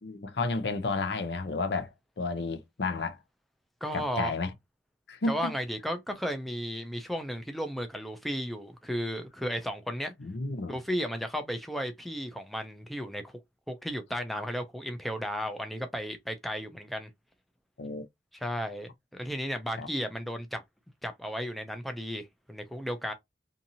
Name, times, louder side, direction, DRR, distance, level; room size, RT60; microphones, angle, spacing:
voice 1, 0.0-1.9 2.2-3.2 3.9-4.5 5.1-5.5 10.2-10.8 17.8-18.1 19.8-19.9, left 3 dB, 80° left, 0.6 m, -31 dB
voice 2, 3.8-4.3 5.3-10.1 10.7-13.3 13.7-17.1 18.3-20.6 21.0-23.1, equal, ahead, 0.3 m, -34 dB
2.7 x 2.6 x 2.6 m
head